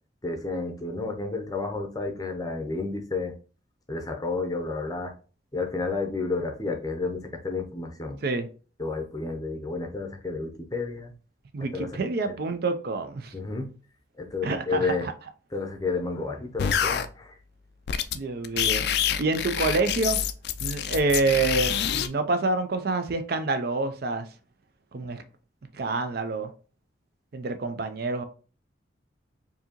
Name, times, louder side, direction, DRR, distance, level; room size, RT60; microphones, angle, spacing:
voice 1, 0.2-3.3 3.9-5.1 5.5-8.2 8.8-11.1 11.7-11.9 12.3-12.4 13.3-13.7 14.2-15.1 15.5-17.4, left 3 dB, 20° left, 0.6 m, -31 dB
voice 2, 11.5-13.3 14.4-15.0 18.1-20.2 20.6-24.3 24.9-25.2 25.7-26.5 27.3-28.2, right 3 dB, 50° right, 0.4 m, -27 dB
sound 1, 16.6-17.0 17.9-18.2 18.4-22.1, left 8 dB, 55° left, 0.3 m, -26 dB
4.6 x 2.7 x 2.9 m
head